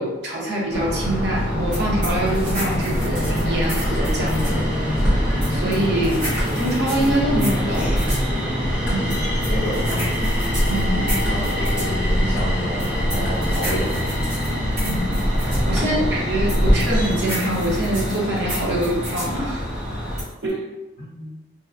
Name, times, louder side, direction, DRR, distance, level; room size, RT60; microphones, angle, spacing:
voice 1, 0.0-4.7 5.5-6.3 6.6-8.1 8.9-9.1 10.7-11.2 14.8-19.6 20.4-20.6, right 1 dB, 60° right, -3 dB, 0.7 m, -25 dB
sound 1, 0.7-20.2, equal, 5° right, 0.6 m, -23 dB
sound 2, 1.7-4.6 5.4-8.3 9.1-11.9 12.8-15.7 16.5-19.4 20.2-20.5, right 1 dB, 45° right, 1.2 m, -33 dB
voice 2, 9.5-10.3 11.2-14.0 15.8-16.2 21.0-21.4, equal, 45° left, -8 dB, 0.5 m, -30 dB
2.8 x 2.1 x 2.4 m, 1.0 s
head